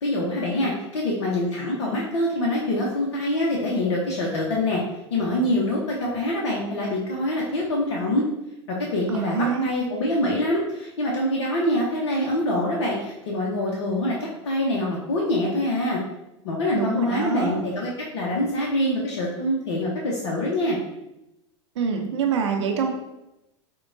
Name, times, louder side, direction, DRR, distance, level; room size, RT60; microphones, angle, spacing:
voice 1, 0.0-4.8 5.1-8.3 8.7-16.0 16.4-20.8, left 1 dB, 70° left, -3 dB, 0.7 m, -25 dB
voice 2, 9.1-9.7 16.7-17.6 21.8-22.9, right 6 dB, 70° right, 4 dB, 0.5 m, -25 dB
4.5 x 2.1 x 2.5 m, 0.91 s
figure-of-eight pair, 90°, 15 cm